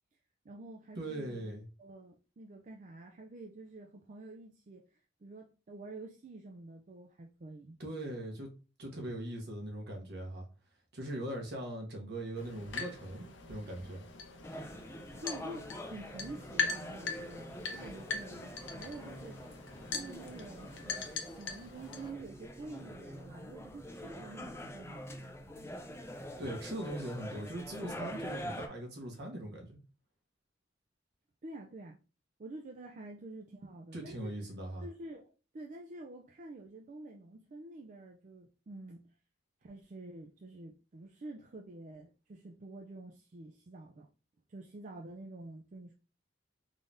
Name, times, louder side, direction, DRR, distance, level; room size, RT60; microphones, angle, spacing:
voice 1, 0.4-1.5 1.8-7.8 15.2-19.6 19.9-25.3 31.4-32.0 32.4-34.3 34.8-39.1 39.6-44.1 44.5-45.9, right 2 dB, 40° right, 0.4 m, -48 dB
voice 2, 1.0-1.6 7.8-8.5 8.8-10.5 10.9-14.0 26.4-29.8 33.9-34.9, right 1 dB, 60° right, 1.2 m, -40 dB
sound 1, 12.4-22.1, left 5 dB, 70° left, 0.7 m, -41 dB
sound 2, 14.4-28.7, equal, 15° left, 0.5 m, -45 dB
3.8 x 3.4 x 2.6 m
head